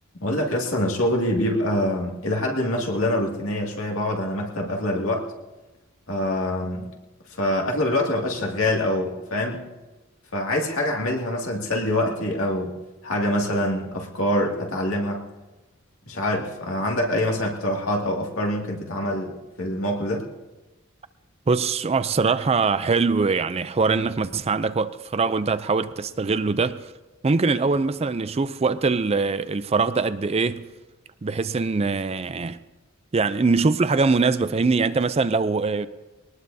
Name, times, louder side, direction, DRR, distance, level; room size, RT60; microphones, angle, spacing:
voice 1, 0.2-5.3 6.1-6.9 7.4-9.7 10.3-12.8 13.0-15.2 16.0-20.3, left 1 dB, 75° left, 2.3 m, -25 dB
voice 2, 21.5-26.9 27.2-30.7 31.2-32.6 33.1-35.9, right 4 dB, 30° right, 0.4 m, -22 dB
22.0 x 19.0 x 2.7 m
head